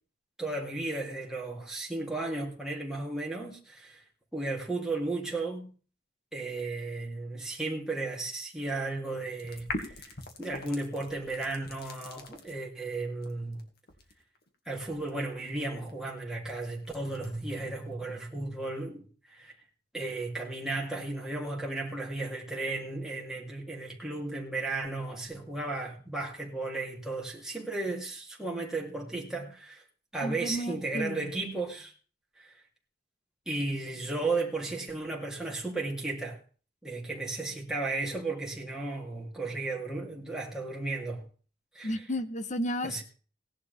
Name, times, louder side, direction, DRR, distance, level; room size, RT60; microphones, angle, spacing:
voice 1, 0.4-4.0 4.3-5.7 6.3-13.6 14.6-19.5 19.9-29.8 30.1-31.9 32.4-32.5 33.4-36.4 36.8-41.3 41.7-41.9 42.8-43.0, right 2 dB, 5° right, 3.4 m, -34 dB
sound 1, 9.4-12.5 13.2-18.1, left 2 dB, 55° left, 2.4 m, -43 dB
voice 2, 30.2-31.3 41.8-43.0, equal, 40° left, 0.9 m, -33 dB
18.0 x 11.5 x 3.7 m
head